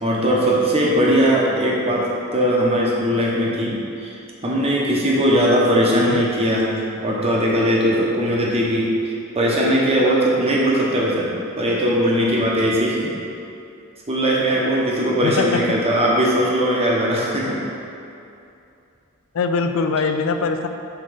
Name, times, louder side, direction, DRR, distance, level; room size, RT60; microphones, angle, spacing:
voice 1, 0.0-4.2 4.4-11.3 11.6-13.1 14.1-17.6, equal, 30° right, -4 dB, 1.0 m, -19 dB
voice 2, 15.2-15.6 19.3-20.7, left 4 dB, 65° left, 7 dB, 0.4 m, -22 dB
5.8 x 3.7 x 5.0 m, 2.6 s
head